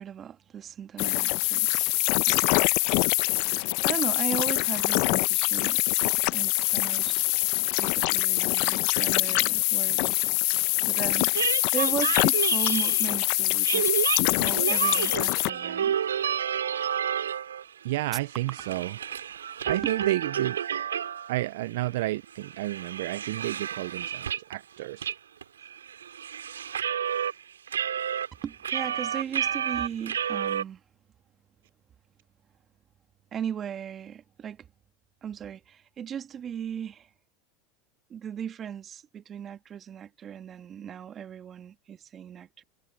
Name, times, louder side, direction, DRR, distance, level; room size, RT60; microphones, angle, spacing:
voice 1, 0.0-1.9 2.2-2.7 3.4-7.2 7.8-10.2 10.9-11.3 11.7-13.9 14.4-15.9 18.1-18.2 18.5-18.9 19.8-20.0 20.3-20.4 28.4-30.8 33.3-34.7 35.2-37.1 38.1-42.6, right 8 dB, 35° right, 1.9 m, -37 dB
sound 1, 1.0-15.5, left 26 dB, 60° left, 1.0 m, -24 dB
sound 2, 11.3-13.2 13.6-17.7 18.0-21.4 21.8-21.9 22.3-24.6 25.0-25.1 25.4-27.3 27.7-30.6, right 9 dB, 90° right, 2.9 m, -30 dB
voice 2, 17.8-18.9 19.6-20.6 21.3-25.1, right 17 dB, 70° right, 0.5 m, -31 dB
hypercardioid pair, 95°, 0 cm